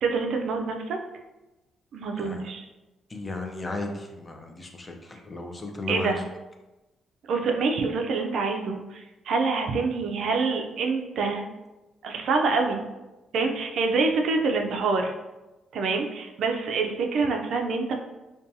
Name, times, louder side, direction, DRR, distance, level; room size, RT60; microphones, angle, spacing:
voice 1, 0.0-1.0 1.9-2.6 5.9-6.2 7.3-11.4 12.0-12.8 13.3-15.1 15.7-17.9, right 4 dB, 70° right, 3 dB, 0.3 m, -26 dB
voice 2, 3.1-6.2, left 2 dB, 25° left, 3 dB, 0.4 m, -35 dB
2.6 x 2.2 x 2.6 m, 1.1 s
cardioid pair, 90°, 0 cm